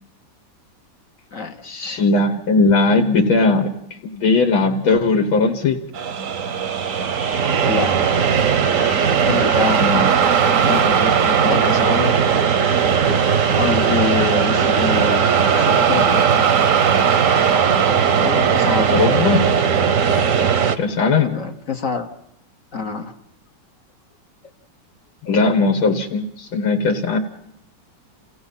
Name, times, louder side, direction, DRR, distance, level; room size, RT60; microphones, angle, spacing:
voice 1, 1.3-2.0 7.6-8.1 9.1-10.3 10.6-12.1 13.5-16.5 18.2-18.9 21.2-22.1 22.7-23.1, left 5 dB, 50° left, 5 dB, 1.3 m, -26 dB
voice 2, 2.0-3.7 4.0-5.8 9.6-10.1 18.9-19.5 20.8-21.4 25.2-27.2, left 3 dB, 85° left, 2 dB, 2.2 m, -18 dB
sound 1, 5.9-20.8, right 7 dB, 50° right, 1.1 m, -17 dB
29.5 x 16.5 x 5.6 m, 0.81 s
omnidirectional pair, 2.1 m